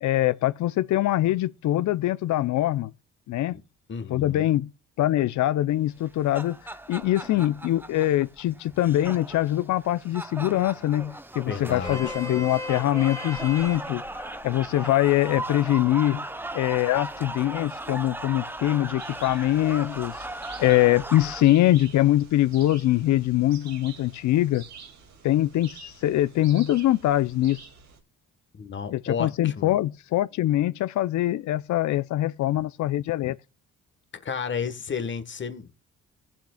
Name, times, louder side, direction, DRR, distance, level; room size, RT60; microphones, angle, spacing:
voice 1, 0.0-2.9 3.3-3.6 4.1-4.7 5.0-6.6 6.9-14.0 14.4-16.3 16.5-20.1 20.6-24.6 25.2-27.6 28.9-33.4, left 14 dB, 70° left, 0.6 m, -23 dB
voice 2, 3.9-4.5 11.5-12.1 28.5-29.7 34.1-35.7, left 6 dB, 40° left, 1.3 m, -32 dB
sound 1, 6.0-21.4, right 1 dB, 5° right, 0.8 m, -37 dB
Vehicle horn car horn honking, 11.6-18.0, left 1 dB, 10° left, 1.1 m, -40 dB
sound 2, 19.0-28.0, right 5 dB, 60° right, 2.3 m, -47 dB
20.5 x 7.4 x 2.3 m
cardioid pair, 90°, 30 cm